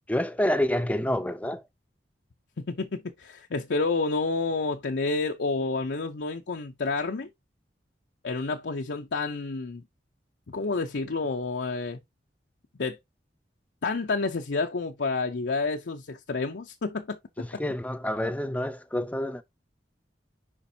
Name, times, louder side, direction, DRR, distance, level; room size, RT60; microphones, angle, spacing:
voice 1, 0.0-1.6 17.4-19.4, left 1 dB, 10° left, 0.6 m, -28 dB
voice 2, 2.6-7.3 8.2-9.8 10.5-12.0 12.8-13.0 13.8-17.6, left 3 dB, 75° left, 0.6 m, -29 dB
7.0 x 5.2 x 2.7 m
head